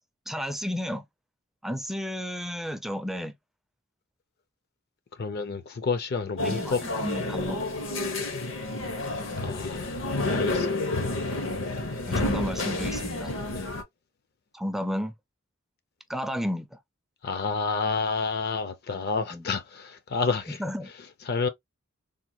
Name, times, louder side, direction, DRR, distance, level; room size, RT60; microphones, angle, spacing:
voice 1, 0.3-1.0 1.6-3.3 6.4-7.6 12.1-13.3 14.5-15.1 16.1-16.8 19.3-19.5 20.5-20.9, equal, ahead, 0.3 m, -32 dB
voice 2, 5.2-6.8 9.3-10.8 13.4-13.7 17.2-20.6 21.3-21.5, left 4 dB, 50° left, 0.5 m, -29 dB
sound 1, 6.4-13.8, left 2 dB, 70° left, 0.9 m, -30 dB
3.5 x 2.1 x 2.9 m
head